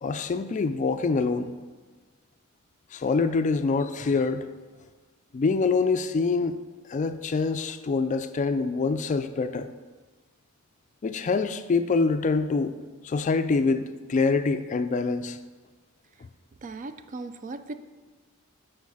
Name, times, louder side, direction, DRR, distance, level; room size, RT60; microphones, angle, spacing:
voice 1, 0.0-1.5 2.9-4.5 5.3-6.5 6.9-9.7 11.0-12.7 13.0-15.4, left 4 dB, 35° left, 10 dB, 0.3 m, -25 dB
voice 2, 16.6-17.7, right 3 dB, 35° right, 10 dB, 0.4 m, -37 dB
8.3 x 4.6 x 4.8 m, 1.4 s
head